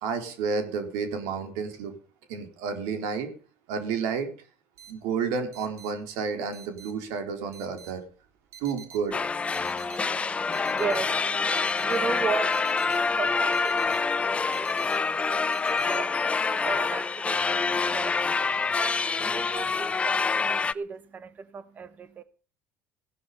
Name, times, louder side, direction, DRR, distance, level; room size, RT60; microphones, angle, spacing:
voice 1, 0.0-1.9 2.3-3.3 3.7-4.3 4.9-8.0 8.6-9.2, right 5 dB, 85° right, 4.0 m, -30 dB
sound 1, 4.8-16.0, right 8 dB, 65° right, 3.0 m, -49 dB
sound 2, 9.1-20.7, left 4 dB, 20° left, 0.7 m, -26 dB
voice 2, 9.5-18.2 18.8-22.2, right 5 dB, 30° right, 1.0 m, -37 dB
16.0 x 11.5 x 5.5 m
cardioid pair, 110°, 6 cm